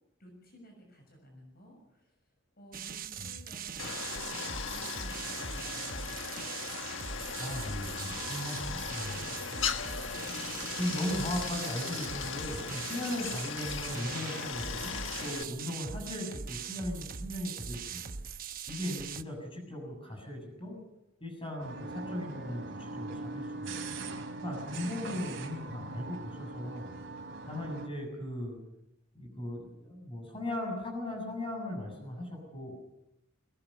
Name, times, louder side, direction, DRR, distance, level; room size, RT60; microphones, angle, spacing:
voice 1, 0.2-6.2 7.3-7.7 8.0-8.3 8.6-9.7, equal, 50° left, 2 dB, 6.4 m, -55 dB
sound 1, 2.7-19.2, right 6 dB, 45° right, 0.9 m, -41 dB
Stream, 3.8-15.4, left 6 dB, 75° left, 1.5 m, -38 dB
voice 2, 7.4-9.3 10.7-18.2 18.7-20.8 21.2-23.7 24.4-26.9 27.5-28.6 29.1-32.7, left 1 dB, 30° left, 3 dB, 7.5 m, -38 dB
sound 2, 21.6-27.9, right 2 dB, 75° right, 3.3 m, -41 dB
22.0 x 19.0 x 7.0 m, 0.87 s
head